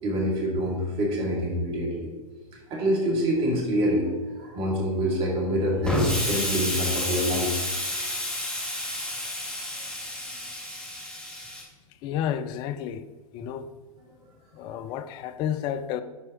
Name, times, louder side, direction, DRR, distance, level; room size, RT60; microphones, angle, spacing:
voice 1, 0.0-2.1 2.7-7.7, equal, 30° right, 2.3 m, -26 dB
Explosion, 5.8-11.6, left 1 dB, 5° left, 1.5 m, -30 dB
voice 2, 12.0-13.0 13.3-13.7 14.5-16.0, left 9 dB, 25° left, 0.4 m, -31 dB
11.5 x 4.4 x 3.0 m
figure-of-eight pair, 110°, 19 cm